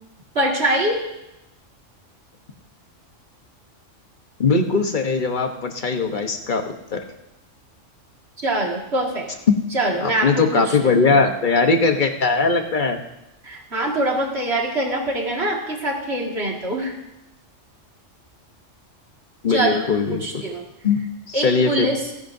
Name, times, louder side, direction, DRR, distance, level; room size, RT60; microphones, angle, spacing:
voice 1, 0.3-1.0 8.4-9.3 9.7-11.0 13.4-17.0 19.5-20.6 21.3-22.1, right 1 dB, 55° right, 0 dB, 2.4 m, -24 dB
voice 2, 4.4-6.6 6.9-7.0 9.5-9.6 10.0-13.0 19.4-20.4 20.8-21.0 21.3-21.9, left 4 dB, 40° left, 5 dB, 1.2 m, -20 dB
28.0 x 10.5 x 2.7 m, 0.89 s
omnidirectional pair, 1.3 m